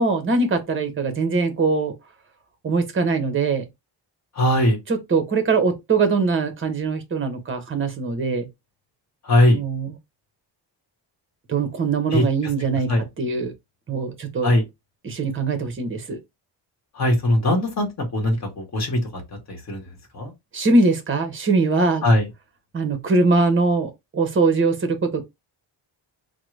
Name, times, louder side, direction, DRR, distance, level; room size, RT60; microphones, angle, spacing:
voice 1, 0.0-1.9 2.6-3.6 4.9-8.5 9.5-9.9 11.5-13.5 13.9-14.5 15.0-16.2 20.5-22.0 22.7-25.2, right 3 dB, 30° right, 0.6 m, -22 dB
voice 2, 4.4-4.8 9.3-9.6 12.1-12.2 12.9-13.0 14.4-14.6 17.0-17.9 18.1-19.0 19.5-19.8 20.1-20.3 22.0-22.3, left 1 dB, 40° left, 1.0 m, -19 dB
3.6 x 2.0 x 3.1 m
wide cardioid pair, 175°, 43 cm